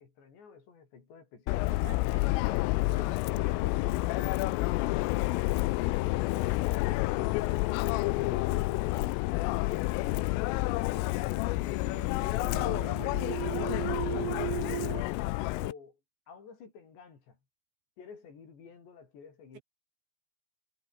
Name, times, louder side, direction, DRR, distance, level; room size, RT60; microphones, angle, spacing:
voice 1, 0.0-1.8 8.1-9.1 9.7-14.5 15.4-16.0 16.3-17.4 18.0-19.6, left 5 dB, 55° left, 7.3 m, -49 dB
Subway metro underground, 1.5-15.7, left 20 dB, 85° left, 3.3 m, -29 dB
voice 2, 1.7-2.7, right 10 dB, 70° right, 3.3 m, -50 dB
sound 1, 11.1-15.0, right 22 dB, 85° right, 3.0 m, -37 dB
omnidirectional pair, 6.0 m